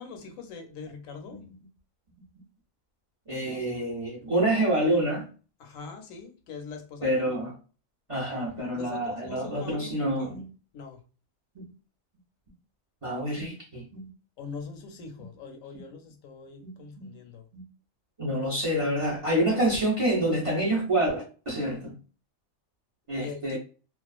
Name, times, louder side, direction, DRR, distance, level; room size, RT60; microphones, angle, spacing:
voice 1, 0.0-1.4 3.4-3.7 5.6-7.5 8.7-10.3 10.7-11.0 14.4-17.4 23.2-23.6, left 5 dB, 80° left, 1.0 m, -42 dB
voice 2, 3.3-5.3 7.0-7.5 8.1-10.5 11.5-11.7 13.0-14.1 16.6-17.1 17.5-17.6 18.2-22.0 23.1-23.6, right 1 dB, 40° right, 0.5 m, -27 dB
2.4 x 2.3 x 2.3 m
omnidirectional pair, 1.4 m